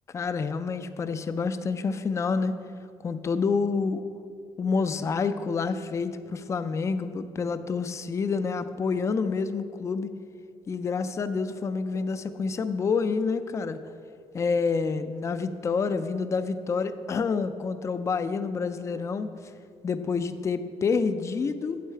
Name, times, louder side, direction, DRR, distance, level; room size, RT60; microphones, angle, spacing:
voice 1, 0.1-2.5 3.0-4.0 4.6-10.1 10.7-13.8 14.3-19.3 19.8-21.8, left 5 dB, 25° left, 11 dB, 0.4 m, -28 dB
8.2 x 7.9 x 4.4 m, 2.4 s
cardioid pair, 140°, 11 cm